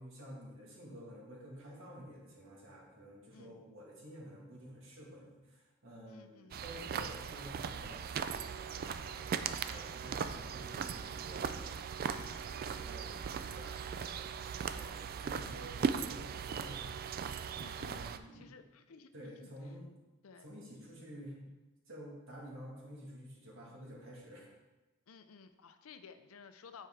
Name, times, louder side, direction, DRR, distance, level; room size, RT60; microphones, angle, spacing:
voice 1, 0.0-14.3 14.7-16.9 17.8-18.6 19.1-19.9 20.4-21.4 21.9-24.5, equal, 65° right, -3 dB, 2.0 m, -51 dB
voice 2, 3.3-3.6 6.1-6.7 15.4-15.8 17.6-19.5 20.2-20.5 23.7-23.8 25.1-26.9, left 5 dB, 90° left, 9 dB, 0.5 m, -56 dB
sound 1, 6.5-18.2, right 6 dB, 45° right, 0.3 m, -39 dB
9.7 x 4.6 x 3.7 m, 1.1 s
head